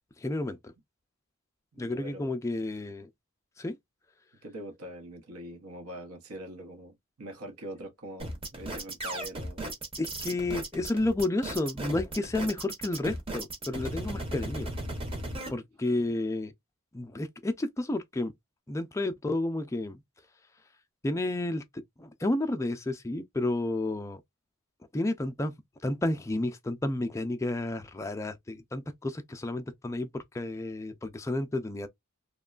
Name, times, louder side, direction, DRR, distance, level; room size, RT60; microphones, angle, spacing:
voice 1, 0.2-0.7 1.8-3.1 3.6-3.8 10.0-14.7 15.3-16.5 16.9-18.3 18.7-20.0 21.0-21.6 22.0-24.2 24.9-25.5 25.8-31.9, left 2 dB, 15° left, 0.3 m, -31 dB
voice 2, 1.7-2.3 4.4-9.7, right 1 dB, 85° right, 0.9 m, -43 dB
sound 1, 8.2-15.5, right 1 dB, 25° right, 0.7 m, -36 dB
2.9 x 2.2 x 2.3 m
head